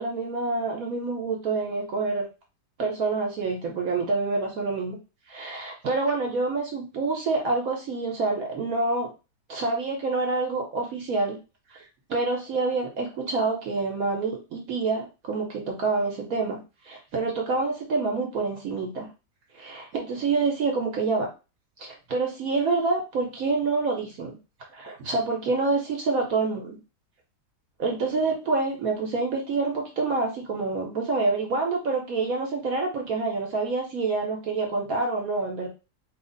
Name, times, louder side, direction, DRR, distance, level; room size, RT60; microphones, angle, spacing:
voice 1, 0.0-2.2 2.8-5.0 5.3-9.1 9.5-11.4 11.7-16.6 16.8-19.1 19.5-21.3 21.8-24.4 24.7-26.8 27.8-35.7, right 3 dB, 60° right, 0 dB, 1.1 m, -27 dB
3.2 x 2.4 x 3.8 m, 0.30 s
omnidirectional pair, 1.8 m